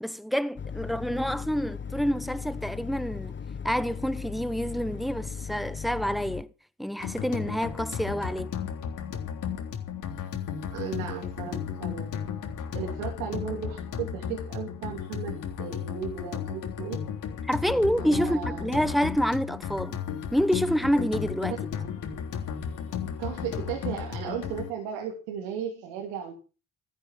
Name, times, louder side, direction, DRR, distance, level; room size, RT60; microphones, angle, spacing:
voice 1, 0.0-3.3 3.6-6.5 6.8-8.5 17.4-20.0 20.3-21.6, equal, ahead, 1.1 m, -27 dB
sound 1, 0.6-6.4, left 6 dB, 30° left, 1.1 m, -37 dB
sound 2, 7.0-24.7, left 8 dB, 60° left, 3.4 m, -34 dB
voice 2, 10.7-12.1 12.7-17.0 17.8-18.9 23.2-26.3, right 8 dB, 80° right, 3.2 m, -35 dB
14.0 x 11.0 x 5.9 m
hypercardioid pair, 60°, 35 cm